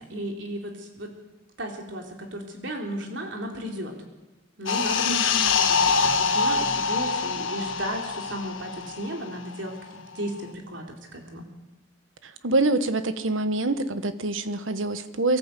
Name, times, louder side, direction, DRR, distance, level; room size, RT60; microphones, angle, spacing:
voice 1, 0.1-1.1 1.6-3.9 4.6-11.5, right 1 dB, 70° right, 2 dB, 3.7 m, -35 dB
sound 1, 4.7-9.7 10.0-10.2, left 5 dB, 85° left, 1.4 m, -25 dB
voice 2, 5.1-5.5 12.2-15.4, right 2 dB, 90° right, 11 dB, 1.3 m, -26 dB
23.5 x 14.5 x 8.4 m, 1.1 s
head